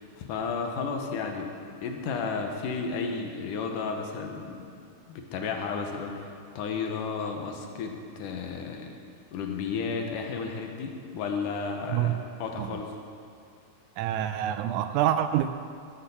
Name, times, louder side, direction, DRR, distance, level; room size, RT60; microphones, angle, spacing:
voice 1, 0.0-1.5 1.8-4.6 5.1-8.9 9.3-13.0, left 5 dB, 90° left, 3 dB, 2.7 m, -33 dB
voice 2, 14.0-15.5, right 11 dB, 80° right, 10 dB, 1.9 m, -26 dB
16.0 x 6.9 x 7.1 m, 2.3 s
omnidirectional pair, 3.6 m